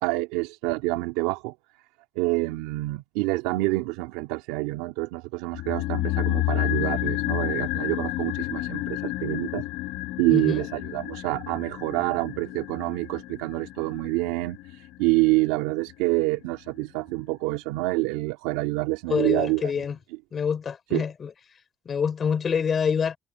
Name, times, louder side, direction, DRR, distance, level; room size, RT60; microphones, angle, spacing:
voice 1, 0.0-1.5 2.2-9.6 10.2-19.7 20.9-21.0, right 22 dB, 90° right, 2.7 m, -27 dB
sound 1, 5.5-16.1, left 18 dB, 80° left, 1.3 m, -30 dB
voice 2, 10.3-10.6 19.1-20.0 20.3-21.3 21.9-23.2, left 6 dB, 50° left, 5.1 m, -26 dB
supercardioid pair, 65°, 0 cm